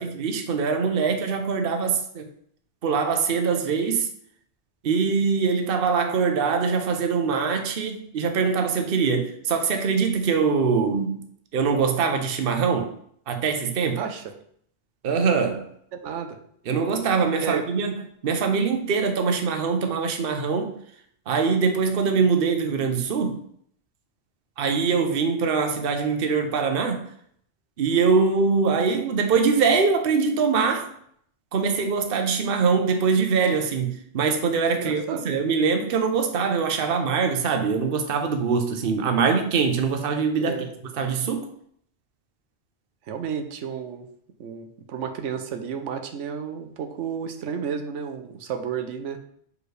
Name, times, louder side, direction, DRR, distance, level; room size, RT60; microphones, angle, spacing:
voice 1, 0.0-2.3 2.8-4.1 4.8-11.2 11.5-12.9 13.3-14.0 15.0-15.7 16.7-18.0 18.2-20.7 21.3-23.4 24.6-27.1 27.8-30.9 31.5-40.6 40.9-41.5, right 5 dB, 55° right, 0.9 m, -23 dB
voice 2, 16.0-16.4 17.4-17.6 34.7-35.2 40.4-40.7 43.1-44.1 44.4-49.2, right 7 dB, 90° right, 1.0 m, -32 dB
6.2 x 4.7 x 3.3 m
omnidirectional pair, 1.2 m